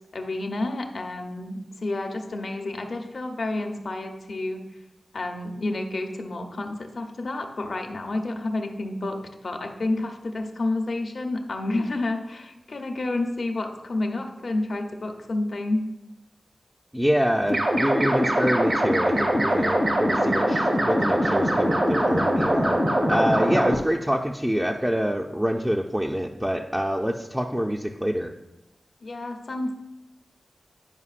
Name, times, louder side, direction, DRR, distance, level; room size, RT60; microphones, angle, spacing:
voice 1, 0.0-4.6 5.1-15.8 29.0-29.8, left 2 dB, 70° left, 4 dB, 0.8 m, -30 dB
voice 2, 16.9-22.8 23.1-28.3, equal, 10° right, 1 dB, 0.4 m, -26 dB
sound 1, 17.5-23.8, equal, 65° right, 1.1 m, -22 dB
9.6 x 5.2 x 2.4 m, 0.95 s
wide cardioid pair, 75°, 0 cm